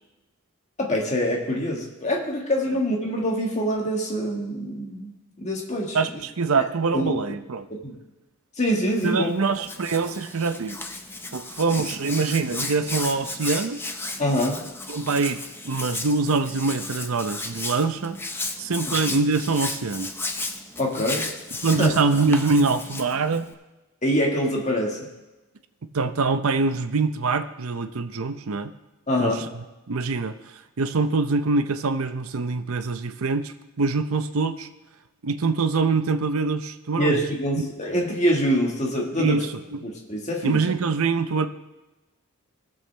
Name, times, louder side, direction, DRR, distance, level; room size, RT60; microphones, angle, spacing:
voice 1, 0.8-6.0 6.9-7.1 7.8-8.0 8.6-9.3 14.2-14.7 20.8-21.3 21.8-21.9 24.0-25.0 29.1-29.4 37.0-39.4 39.8-40.6, equal, 30° left, -1 dB, 1.8 m, -25 dB
voice 2, 5.9-7.7 9.0-10.8 11.3-13.8 14.9-15.4 15.6-18.2 18.6-20.1 21.6-23.5 25.9-28.7 29.2-29.5 29.9-30.3 30.8-34.7 35.2-37.2 37.6-37.7 39.2-39.8 40.4-41.5, right 4 dB, 75° right, 10 dB, 0.7 m, -24 dB
Hands, 8.9-23.5, left 2 dB, 10° left, 0.6 m, -34 dB
18.5 x 7.1 x 3.4 m, 1.0 s
head